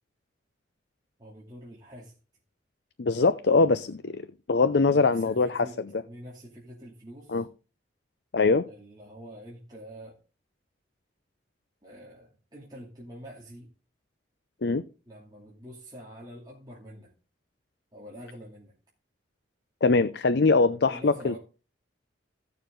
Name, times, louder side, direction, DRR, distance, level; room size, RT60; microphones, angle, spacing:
voice 1, 1.2-2.2 4.8-7.4 8.6-10.2 11.8-13.7 15.1-17.1 17.9-18.7 20.9-21.4, equal, 20° right, 2.7 m, -46 dB
voice 2, 3.0-4.2 4.5-5.7 7.3-7.4 8.3-8.7 14.6-14.8 19.8-21.4, left 3 dB, 65° left, 0.5 m, -22 dB
15.5 x 6.8 x 3.8 m
head